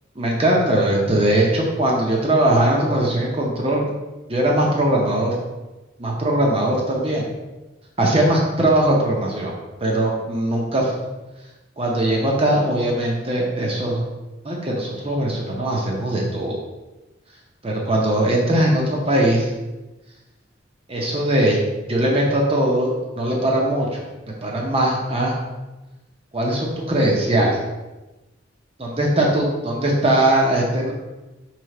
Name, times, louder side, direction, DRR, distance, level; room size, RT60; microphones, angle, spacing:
voice 1, 0.2-3.9 4.3-5.4 6.0-7.3 8.0-9.5 9.8-10.9 11.8-14.1 14.4-16.6 17.6-19.5 20.9-21.6 21.9-24.0 24.4-25.4 26.3-27.6 28.8-30.9, right 1 dB, 30° right, -2 dB, 0.7 m, -20 dB
3.3 x 3.3 x 4.8 m, 1.1 s
head